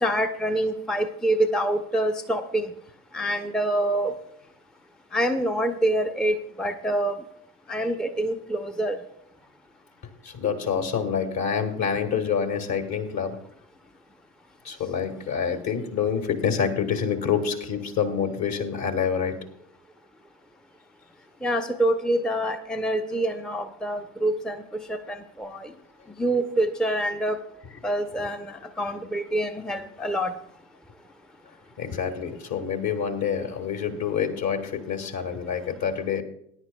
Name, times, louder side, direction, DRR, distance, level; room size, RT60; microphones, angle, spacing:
voice 1, 0.0-2.7 3.1-4.1 5.1-7.1 7.7-9.0 21.4-24.6 24.9-25.7 26.2-27.4 27.8-30.3, right 1 dB, ahead, 7 dB, 0.7 m, -26 dB
voice 2, 10.2-13.4 14.6-19.4 31.8-36.2, left 7 dB, 50° left, 6 dB, 2.0 m, -27 dB
20.0 x 10.5 x 2.3 m, 0.73 s
figure-of-eight pair, 60°, 47 cm